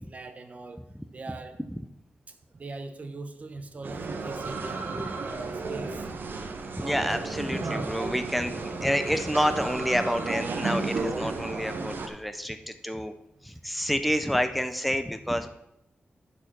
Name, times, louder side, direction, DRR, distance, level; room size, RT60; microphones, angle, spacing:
voice 1, 0.0-0.8 1.1-1.6 2.5-5.9, right 3 dB, 40° right, 8 dB, 0.8 m, -41 dB
sound 1, 3.8-12.1, right 3 dB, 60° right, 1.0 m, -33 dB
voice 2, 6.8-13.1 13.4-15.5, equal, ahead, 9 dB, 0.4 m, -29 dB
11.0 x 4.4 x 6.0 m, 0.82 s
wide cardioid pair, 160°, 4 cm